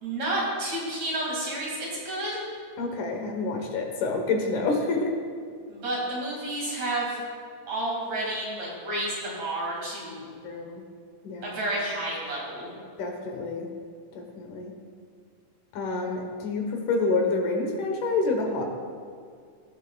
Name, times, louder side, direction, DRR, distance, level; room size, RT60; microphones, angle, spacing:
voice 1, 0.0-1.8 2.0-2.4 5.7-7.2 7.7-10.3 11.4-12.7, right 1 dB, 55° right, -4 dB, 3.4 m, -30 dB
voice 2, 2.8-5.1 10.4-10.8 11.2-11.6 13.0-13.7 14.1-14.7 15.7-18.6, left 3 dB, 75° left, 2 dB, 2.6 m, -28 dB
18.5 x 7.4 x 2.3 m, 2.2 s
omnidirectional pair, 3.8 m